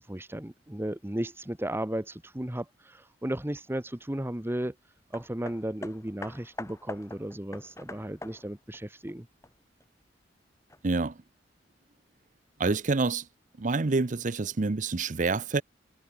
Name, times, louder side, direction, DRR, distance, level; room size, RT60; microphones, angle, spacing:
voice 1, 0.1-4.7 5.1-9.3, right 1 dB, 15° right, 1.0 m, -35 dB
Hammer, 5.1-9.9 10.7-10.8, left 2 dB, 15° left, 4.8 m, -44 dB
voice 2, 10.8-11.2 12.6-13.2 13.6-15.6, right 3 dB, 45° right, 0.7 m, -27 dB
head